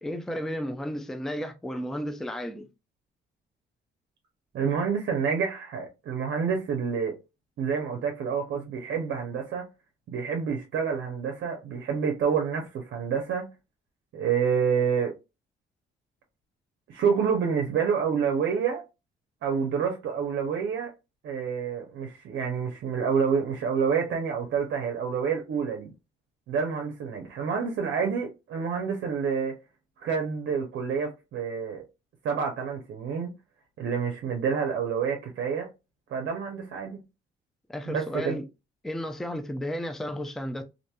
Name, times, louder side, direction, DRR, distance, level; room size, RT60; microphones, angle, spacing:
voice 1, 0.0-2.7 37.7-38.4 38.8-40.6, equal, ahead, 0.4 m, -33 dB
voice 2, 4.5-7.1 7.6-9.7 10.1-13.5 14.1-15.1 16.9-18.8 19.4-20.9 21.2-25.9 26.5-29.6 30.0-31.8 32.2-33.3 33.8-35.7 36.1-37.0 37.9-38.4, right 6 dB, 65° right, 0.6 m, -28 dB
2.8 x 2.6 x 2.2 m
cardioid pair, 90°, 20 cm